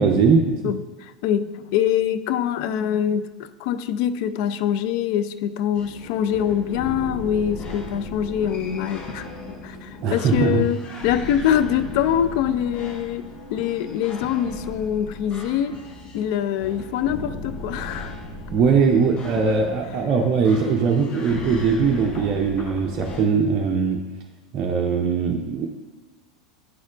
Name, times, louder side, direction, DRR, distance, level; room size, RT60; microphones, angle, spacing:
voice 1, 0.0-0.6 10.0-10.6 18.5-24.0 24.5-25.7, right 5 dB, 40° right, 1 dB, 0.5 m, -20 dB
voice 2, 0.6-9.3 9.6-15.8 16.1-18.1, left 9 dB, 55° left, 12 dB, 0.3 m, -24 dB
sound 1, 5.7-23.2, left 2 dB, 35° left, 0.9 m, -36 dB
9.5 x 4.2 x 2.4 m, 1.2 s
figure-of-eight pair, 85°, 3 cm